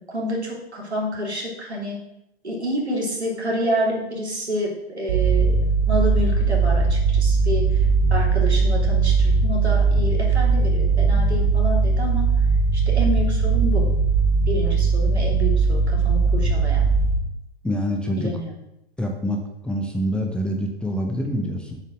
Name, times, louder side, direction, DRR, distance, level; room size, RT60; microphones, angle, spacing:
voice 1, 0.1-2.0 2.4-12.2 12.7-13.9 14.5-16.8 18.2-18.5, equal, 85° right, -2 dB, 3.1 m, -28 dB
sound 1, 5.1-17.2, right 4 dB, 45° right, 1.5 m, -19 dB
voice 2, 17.6-18.3 19.0-21.8, equal, 5° left, 1 dB, 0.7 m, -26 dB
7.6 x 5.5 x 6.2 m, 0.88 s
figure-of-eight pair, 110°, 32 cm